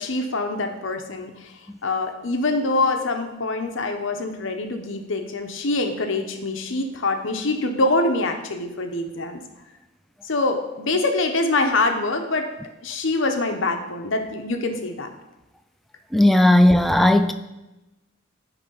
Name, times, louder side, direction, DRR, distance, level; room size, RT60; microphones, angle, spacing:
voice 1, 0.0-1.5 1.8-9.4 10.2-12.5 12.8-15.1, left 2 dB, 70° left, 5 dB, 0.8 m, -24 dB
voice 2, 16.1-17.3, left 1 dB, ahead, 8 dB, 0.3 m, -16 dB
9.9 x 3.3 x 5.5 m, 1.0 s
head